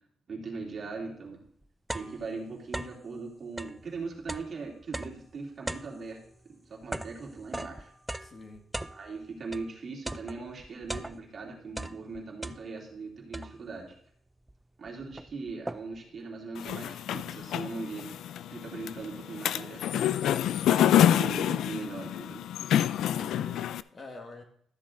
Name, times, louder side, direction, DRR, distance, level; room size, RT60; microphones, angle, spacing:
voice 1, 0.3-1.4 1.9-6.2 6.5-7.9 8.9-13.9 14.8-18.2 18.5-20.1 20.8-22.4, right 4 dB, 45° right, -2 dB, 2.8 m, -40 dB
sound 1, 1.0-1.1 1.5-3.1 3.5-9.7 10.1-11.4 11.7-13.0 13.3-13.9 14.5-14.6 14.9-16.1, right 1 dB, 10° right, 0.4 m, -40 dB
voice 2, 8.2-8.6 23.2-24.4, left 3 dB, 35° left, 3 dB, 1.8 m, -46 dB
sound 2, 16.6-23.8, left 11 dB, 75° left, 0.3 m, -27 dB
13.0 x 6.6 x 3.8 m, 0.64 s
cardioid pair, 90°, 0 cm